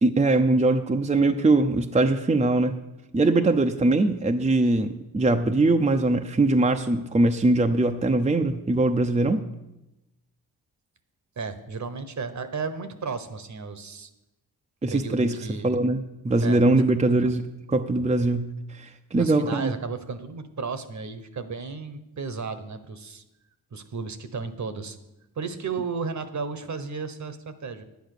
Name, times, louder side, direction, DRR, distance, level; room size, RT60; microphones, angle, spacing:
voice 1, 0.0-2.8 3.1-9.4 14.8-15.3 15.6-19.7, right 2 dB, 15° right, 5 dB, 0.7 m, -22 dB
voice 2, 11.4-14.1 14.9-15.8 16.4-17.3 19.2-23.2 23.7-25.0 25.3-27.8, right 4 dB, 50° right, 11 dB, 1.2 m, -34 dB
10.0 x 8.2 x 6.7 m, 0.94 s
cardioid pair, 75°, 38 cm